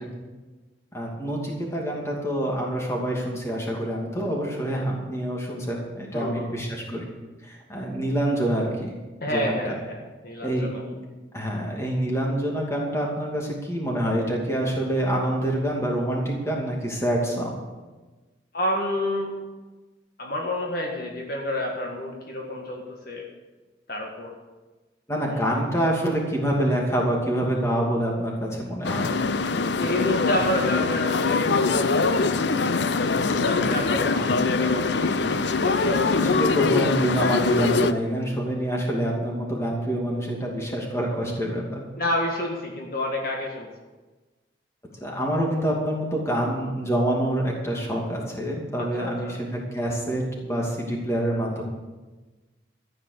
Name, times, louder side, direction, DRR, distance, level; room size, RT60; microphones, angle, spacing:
voice 1, 0.9-7.0 7.4-8.9 9.3-9.7 10.4-10.7 11.3-17.5 25.1-29.1 34.1-34.3 36.4-41.8 45.0-51.6, right 1 dB, 15° left, -2 dB, 2.7 m, -26 dB
voice 2, 6.1-6.5 9.2-10.8 18.5-19.4 20.2-23.3 23.9-24.4 25.3-25.5 29.8-32.9 33.3-36.9 42.0-43.7 46.3-46.7 48.7-49.4, left 1 dB, 50° left, 0 dB, 1.8 m, -30 dB
sound 1, 28.8-37.9, left 4 dB, 65° left, 0.6 m, -23 dB
14.0 x 9.0 x 6.8 m, 1.2 s
head